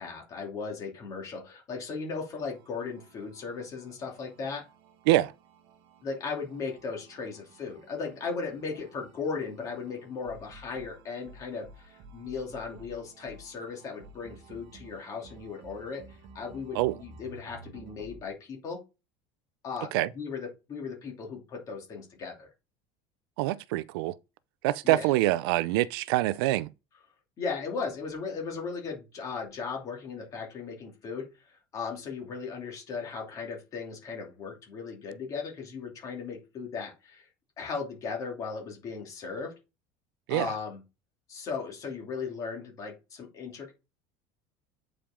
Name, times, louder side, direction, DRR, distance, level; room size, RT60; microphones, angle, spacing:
voice 1, 0.0-4.6 6.0-18.8 19.6-22.5 24.8-25.1 27.4-37.3 37.6-39.5 40.3-40.8 41.3-43.7, left 5 dB, 25° left, 2.8 m, -37 dB
sound 1, 2.3-18.2, right 3 dB, 50° right, 1.4 m, -53 dB
voice 2, 23.4-24.1 24.6-26.7 40.3-40.5, right 17 dB, 80° right, 0.5 m, -25 dB
8.5 x 5.1 x 3.7 m
cardioid pair, 180°, 12 cm